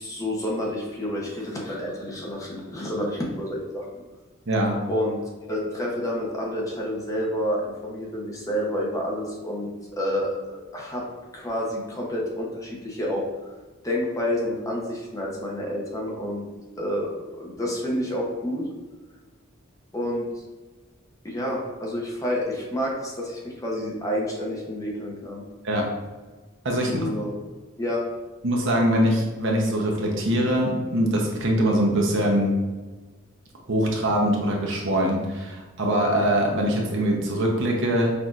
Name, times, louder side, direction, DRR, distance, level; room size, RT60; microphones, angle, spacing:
voice 1, 0.0-4.0 4.9-5.2 5.5-11.0 11.3-13.2 13.8-16.4 16.8-18.7 19.9-20.3 21.2-25.4 26.8-27.3 27.8-28.0, equal, 15° left, -3 dB, 0.7 m, -29 dB
voice 2, 4.5-4.8 25.6-25.8 26.6-26.9 28.4-32.5 33.7-38.1, equal, 65° right, 0 dB, 0.8 m, -23 dB
5.8 x 2.6 x 2.4 m, 1.2 s
head